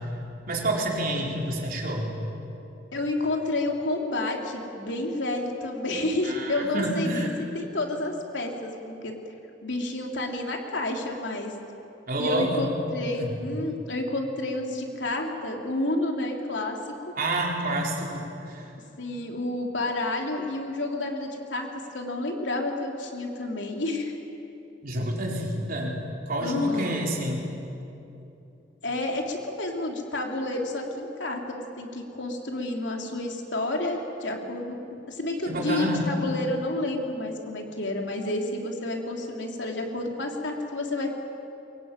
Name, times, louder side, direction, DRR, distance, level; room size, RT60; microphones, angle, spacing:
voice 1, 0.5-2.1 6.2-7.4 12.1-12.7 13.2-13.3 17.2-18.6 24.8-27.5 35.5-36.1, right 1 dB, 50° right, -1 dB, 4.2 m, -28 dB
voice 2, 2.9-7.3 7.5-9.1 9.6-11.5 12.2-16.8 17.1-17.2 19.0-21.7 21.9-24.1 26.4-27.0 28.8-41.1, left 2 dB, 70° left, 1 dB, 3.4 m, -30 dB
23.0 x 22.5 x 9.1 m, 2.8 s
head